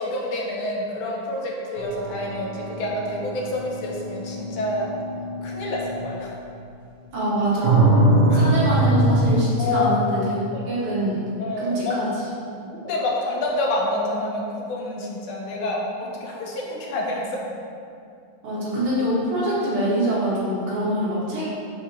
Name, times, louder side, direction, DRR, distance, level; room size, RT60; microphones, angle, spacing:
voice 1, 0.0-4.9 5.4-6.3 8.3-8.4 9.6-10.0 10.5-10.7 11.4-12.0 12.8-17.3, left 2 dB, 80° left, -2 dB, 1.7 m, -28 dB
sound 1, 1.8-6.1 7.6-9.3, right 2 dB, 55° right, 1.2 m, -22 dB
voice 2, 7.1-7.9 8.3-12.3 12.6-12.7 18.4-21.5, right 1 dB, 85° right, -8 dB, 2.5 m, -25 dB
9.8 x 3.6 x 2.8 m, 2.5 s
omnidirectional pair, 2.4 m